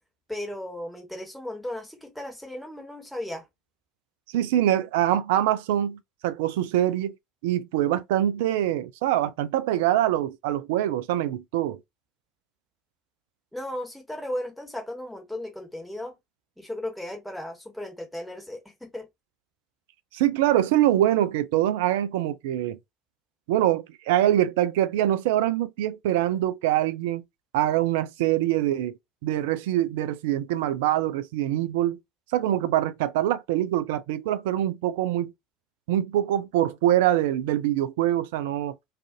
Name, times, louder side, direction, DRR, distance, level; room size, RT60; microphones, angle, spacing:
voice 1, 0.3-3.4 13.5-16.2 16.6-19.1, left 1 dB, 5° left, 1.1 m, -35 dB
voice 2, 4.3-7.1 7.4-11.8 20.1-22.8 23.5-27.2 27.5-32.0 32.3-35.3 35.9-38.8, right 12 dB, 65° right, 0.3 m, -24 dB
2.5 x 2.4 x 2.6 m
figure-of-eight pair, 65°, 0 cm